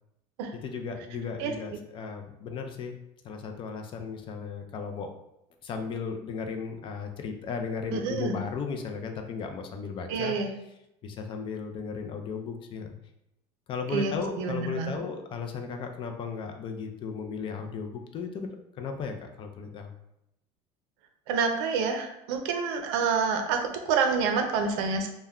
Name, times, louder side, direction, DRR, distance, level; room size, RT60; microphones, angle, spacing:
voice 1, 0.5-3.0 3.2-5.1 5.6-10.4 11.0-12.9 13.7-19.9, left 5 dB, 40° left, 5 dB, 0.4 m, -35 dB
voice 2, 7.9-8.4 10.1-10.5 13.9-15.0 21.3-23.6 23.9-25.1, right 5 dB, 90° right, 5 dB, 0.5 m, -27 dB
2.2 x 2.1 x 3.5 m, 0.84 s
cardioid pair, 125°, 14 cm